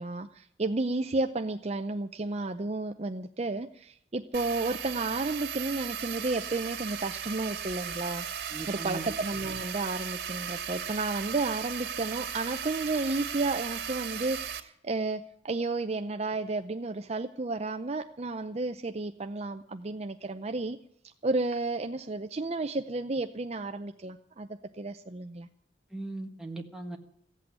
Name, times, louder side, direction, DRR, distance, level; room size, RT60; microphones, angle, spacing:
voice 1, 0.0-8.3 8.7-20.8 21.2-25.5, right 3 dB, 35° right, 7 dB, 0.6 m, -32 dB
sound 1, 4.3-14.6, right 8 dB, 60° right, 2.4 m, -37 dB
voice 2, 8.5-9.1 25.9-27.0, right 2 dB, 5° right, 1 dB, 1.6 m, -38 dB
15.5 x 8.4 x 9.7 m, 0.68 s
head